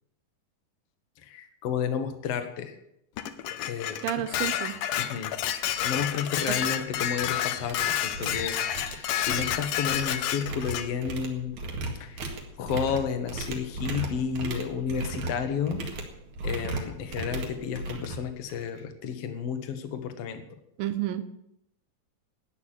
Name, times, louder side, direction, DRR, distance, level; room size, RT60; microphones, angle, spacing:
voice 1, 1.2-2.8 3.7-4.0 5.0-5.3 5.8-8.6 8.9-11.5 12.0-12.3 12.6-15.8 16.4-20.4, left 7 dB, 55° left, 8 dB, 2.0 m, -31 dB
Dishes pots and pans, 3.2-10.9, left 11 dB, 75° left, 2.3 m, -30 dB
voice 2, 4.0-4.8 6.5-6.6 20.8-21.4, right 12 dB, 85° right, 12 dB, 2.7 m, -30 dB
sound 1, 4.7-4.8 5.2-5.4 5.7-6.0 6.3-7.3 7.6-18.8, right 2 dB, 60° right, 3.3 m, -36 dB
13.5 x 9.4 x 8.9 m, 0.79 s
omnidirectional pair, 4.0 m